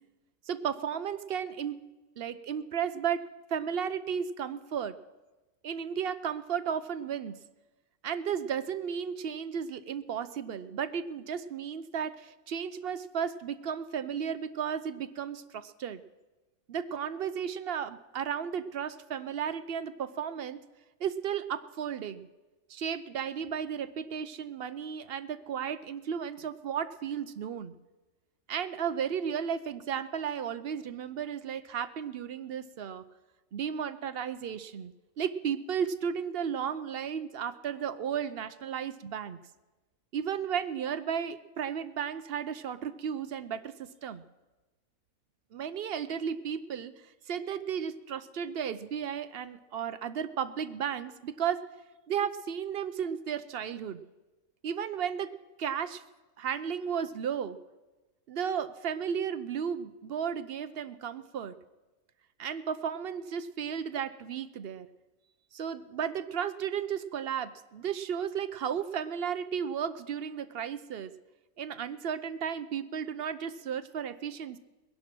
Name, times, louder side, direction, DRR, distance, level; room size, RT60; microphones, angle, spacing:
voice 1, 0.5-1.8 2.2-3.2 3.5-4.9 5.6-7.3 8.0-16.0 16.7-20.6 21.0-22.3 22.7-27.7 28.5-33.0 33.5-39.4 40.1-44.2 45.5-46.9 47.3-51.6 52.1-54.0 54.6-55.3 55.6-56.0 56.4-57.6 58.3-61.5 62.4-64.9 65.5-71.1 71.6-74.6, right 8 dB, 55° right, 12 dB, 0.8 m, -34 dB
20.5 x 11.0 x 6.1 m, 1.1 s
omnidirectional pair, 1.4 m